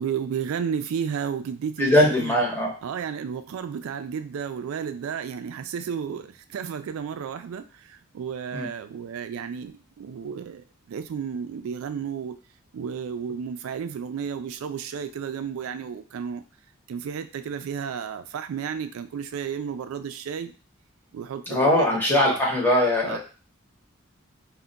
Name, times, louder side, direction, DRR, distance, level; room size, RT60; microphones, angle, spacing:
voice 1, 0.0-2.4 2.8-12.4 12.7-16.4 16.9-20.5 21.1-22.4 23.0-23.2, right 7 dB, 80° right, 10 dB, 0.3 m, -32 dB
voice 2, 1.8-2.7 8.5-8.7 21.5-23.2, left 1 dB, 10° left, -3 dB, 0.7 m, -21 dB
2.2 x 2.1 x 3.8 m, 0.36 s
head